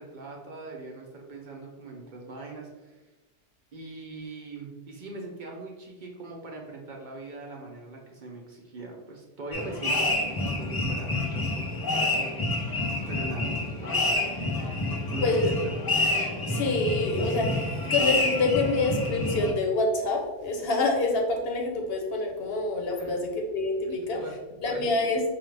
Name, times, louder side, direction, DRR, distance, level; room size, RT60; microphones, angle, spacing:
voice 1, 0.0-3.0 3.7-12.2 13.1-13.5 13.8-14.1 15.1-15.9 23.0-23.2 23.8-24.4 24.7-24.8, right 3 dB, 55° right, 0 dB, 0.7 m, -41 dB
sound 1, 9.5-19.5, left 2 dB, 35° left, 0.4 m, -28 dB
voice 2, 15.2-15.5 16.5-24.2 24.6-25.2, left 2 dB, 65° left, 1 dB, 0.9 m, -26 dB
4.7 x 2.4 x 3.2 m, 1.2 s
omnidirectional pair, 1.1 m